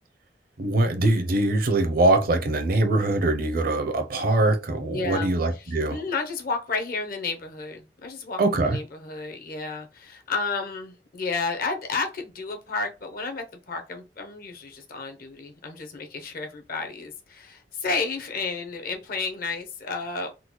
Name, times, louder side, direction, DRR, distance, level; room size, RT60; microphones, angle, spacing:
voice 1, 0.6-6.0 8.4-8.8, right 2 dB, 55° right, 0.6 m, -22 dB
voice 2, 4.9-20.3, left 4 dB, 55° left, 0.8 m, -32 dB
3.8 x 2.2 x 3.0 m
head